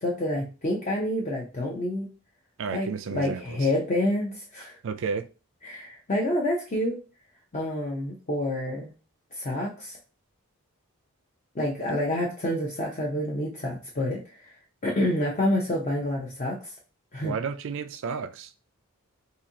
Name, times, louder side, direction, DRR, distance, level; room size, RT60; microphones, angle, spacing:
voice 1, 0.0-2.1 2.7-4.8 5.6-7.0 7.5-8.9 9.3-10.0 11.5-14.2 14.8-16.7 17.1-17.3, left 1 dB, 35° left, 0.6 m, -28 dB
voice 2, 2.6-3.6 4.8-5.3 17.2-18.5, right 5 dB, 60° right, 0.4 m, -32 dB
4.0 x 2.6 x 2.7 m
head